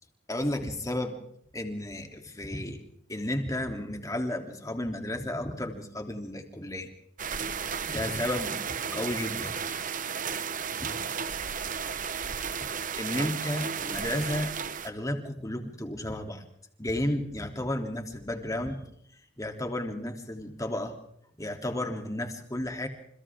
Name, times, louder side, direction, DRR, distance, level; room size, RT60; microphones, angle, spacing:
voice 1, 0.3-1.2 1.5-2.8 3.1-6.9 7.8-8.6 8.9-9.6 10.7-10.9 13.0-14.5 14.8-16.4 16.8-18.8 19.4-21.0 21.4-22.9, left 1 dB, 15° left, 4 dB, 3.1 m, -32 dB
sound 1, 7.2-14.9, right 6 dB, 45° right, 1.1 m, -33 dB
29.0 x 28.5 x 3.7 m, 0.69 s
head